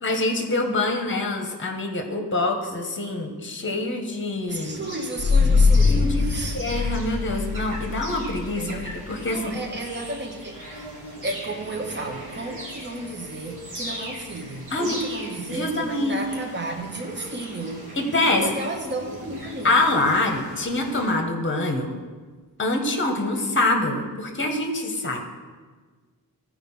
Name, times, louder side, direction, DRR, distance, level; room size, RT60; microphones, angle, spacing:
voice 1, 0.0-4.8 5.8-6.2 6.5-9.6 14.7-15.0 15.5-16.2 17.9-18.5 19.6-21.9 22.6-25.2, left 2 dB, 30° left, 4 dB, 1.3 m, -25 dB
voice 2, 4.5-6.6 8.6-10.6 11.2-17.8 18.4-19.7, right 2 dB, 25° right, 2 dB, 1.1 m, -33 dB
sound 1, 4.5-21.1, right 1 dB, 55° right, 3.0 m, -40 dB
sound 2, 5.2-16.4, left 4 dB, 10° left, 1.9 m, -26 dB
14.5 x 4.9 x 5.6 m, 1.4 s
wide cardioid pair, 160°, 39 cm